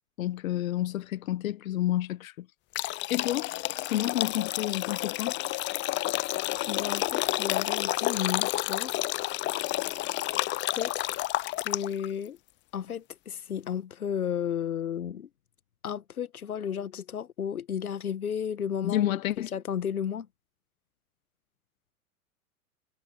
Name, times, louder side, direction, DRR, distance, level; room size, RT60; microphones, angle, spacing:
voice 1, 0.2-2.5 2.8-3.5 3.9-5.3 18.8-19.5, left 13 dB, 65° left, 1.4 m, -30 dB
sound 1, 2.7-12.1, left 18 dB, 25° left, 0.6 m, -30 dB
voice 2, 6.7-9.1 10.7-11.1 11.6-12.4 12.7-15.3 15.8-20.3, left 8 dB, 85° left, 1.5 m, -33 dB
hypercardioid pair, 105°, 43 cm